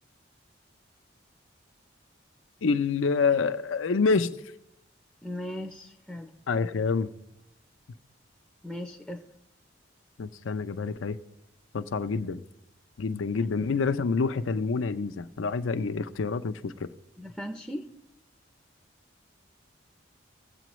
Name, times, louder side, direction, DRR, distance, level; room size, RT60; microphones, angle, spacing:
voice 1, 2.6-4.4 6.5-7.1 10.2-11.2 11.7-12.4 13.0-16.9, left 4 dB, 85° left, 9 dB, 0.5 m, -27 dB
voice 2, 5.2-6.3 8.6-9.2 13.4-13.5 17.2-17.9, left 1 dB, ahead, 2 dB, 0.5 m, -38 dB
18.0 x 7.6 x 3.1 m, 0.78 s
head